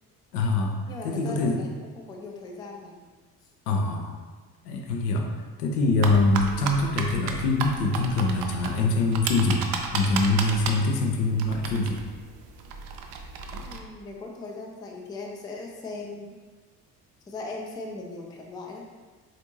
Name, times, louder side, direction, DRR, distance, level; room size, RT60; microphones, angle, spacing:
voice 1, 0.3-1.6 3.7-4.1 4.6-5.3 5.6-9.7 9.9-12.0, left 2 dB, 70° left, 3 dB, 0.6 m, -24 dB
voice 2, 0.9-3.0 13.6-16.4 17.2-18.8, left 3 dB, 10° left, 0 dB, 0.3 m, -39 dB
sound 1, 6.0-13.8, right 4 dB, 50° right, 0.5 m, -34 dB
4.1 x 2.6 x 2.9 m, 1.4 s
figure-of-eight pair, 50°, 48 cm